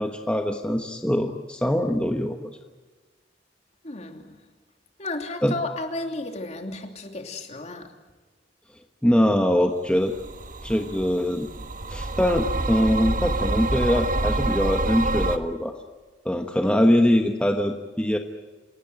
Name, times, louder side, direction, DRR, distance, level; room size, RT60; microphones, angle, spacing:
voice 1, 0.0-2.5 5.4-5.5 9.0-10.1 10.6-11.5 11.9-15.8 16.2-18.2, equal, 5° left, 4 dB, 1.2 m, -23 dB
voice 2, 3.8-4.4 5.0-7.9, left 2 dB, 40° left, 4 dB, 2.9 m, -33 dB
sound 1, 10.1-15.4, right 2 dB, 50° right, 1.3 m, -27 dB
28.5 x 18.0 x 9.3 m, 1.3 s
head